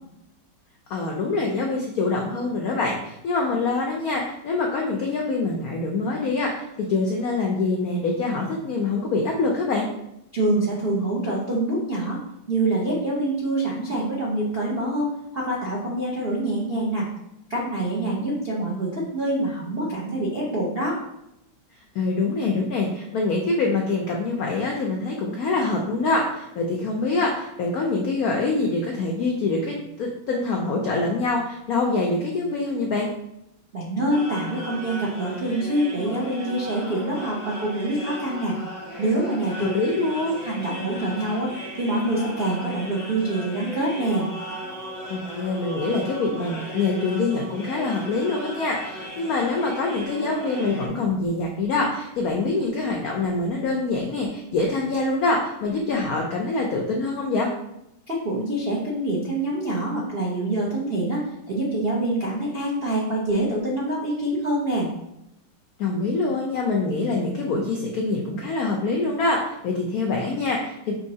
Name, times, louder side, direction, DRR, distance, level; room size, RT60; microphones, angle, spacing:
voice 1, 0.9-9.9 21.9-33.1 39.6-40.4 45.1-57.5 65.8-70.9, left 3 dB, 90° left, 0 dB, 0.8 m, -25 dB
voice 2, 10.3-12.2 12.5-17.1 17.5-21.0 33.7-38.6 39.0-39.7 40.4-44.3 58.1-64.9, right 1 dB, 80° right, -4 dB, 0.5 m, -25 dB
sound 1, 34.1-50.9, equal, 20° left, 0.5 m, -37 dB
5.5 x 3.1 x 2.7 m, 0.82 s
omnidirectional pair, 2.2 m